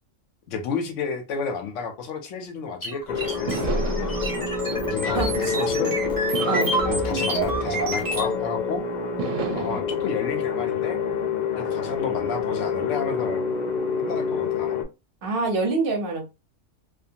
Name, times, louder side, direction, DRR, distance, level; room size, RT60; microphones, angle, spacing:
voice 1, 0.5-3.8 4.9-6.0 6.9-8.9 9.5-11.0 11.5-13.4 14.0-14.8, left 5 dB, 75° left, 0.9 m, -31 dB
sound 1, 2.8-8.3, right 2 dB, 20° right, 0.6 m, -28 dB
sound 2, 2.9-3.0 3.5-5.7 6.3-8.6 9.2-9.8, right 6 dB, 75° right, 0.9 m, -33 dB
sound 3, 3.1-14.8, left 5 dB, 55° left, 0.5 m, -27 dB
voice 2, 5.0-5.5 6.5-6.7 15.2-16.3, right 3 dB, 50° right, 0.9 m, -26 dB
2.5 x 2.4 x 2.7 m
omnidirectional pair, 1.3 m